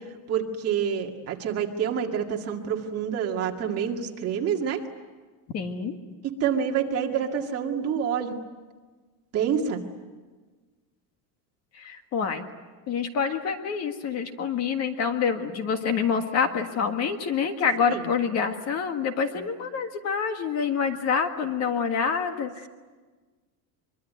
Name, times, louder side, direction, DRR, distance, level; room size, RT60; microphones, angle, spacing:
voice 1, 0.3-4.8 6.2-8.3 9.3-9.8 17.9-18.0, right 8 dB, 35° right, 2 dB, 2.1 m, -27 dB
voice 2, 5.5-6.0 11.7-12.5 12.9-22.7, left 6 dB, 40° left, 7 dB, 1.8 m, -27 dB
24.0 x 24.0 x 9.4 m, 1.4 s
cardioid pair, 180°, 41 cm